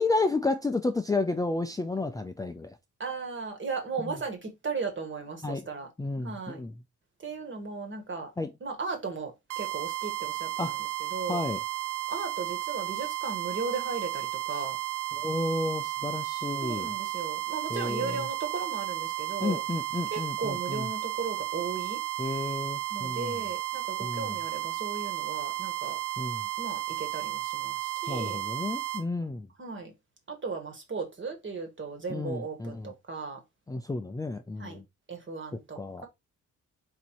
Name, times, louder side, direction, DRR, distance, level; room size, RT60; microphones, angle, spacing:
voice 1, 0.0-2.8 4.1-4.2 5.4-5.7 6.0-6.7 8.4-8.5 10.6-10.7 11.3-11.6 15.1-16.9 17.7-18.3 19.4-20.9 22.2-23.3 24.0-24.3 26.2-26.5 28.1-29.5 32.1-32.9 33.7-34.8 35.8-36.1, left 3 dB, 10° left, 0.4 m, -31 dB
voice 2, 3.0-5.9 6.2-6.6 7.2-8.3 8.6-11.4 12.1-14.8 16.6-19.6 20.1-22.0 22.9-26.0 26.6-28.4 29.6-29.9 30.3-33.4 34.6-34.8 35.1-36.1, right 4 dB, 40° right, 1.7 m, -36 dB
sound 1, 9.5-29.0, right 15 dB, 75° right, 0.6 m, -33 dB
4.2 x 2.6 x 4.5 m
cardioid pair, 90°, 31 cm